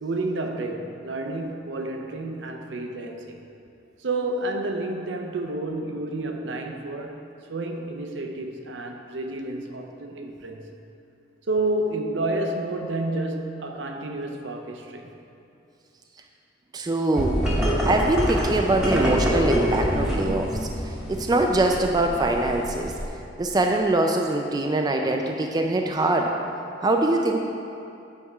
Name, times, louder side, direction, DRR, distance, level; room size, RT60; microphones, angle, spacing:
voice 1, 0.0-3.4 4.0-7.2 7.5-10.7 11.5-15.1, right 2 dB, 75° right, 4 dB, 0.6 m, -30 dB
voice 2, 16.7-20.6 21.1-22.9 23.4-26.3 26.8-27.4, right 2 dB, 20° right, 2 dB, 0.3 m, -23 dB
sound 1, 17.1-23.0, equal, 5° right, 1.0 m, -26 dB
8.6 x 3.6 x 5.4 m, 2.7 s
head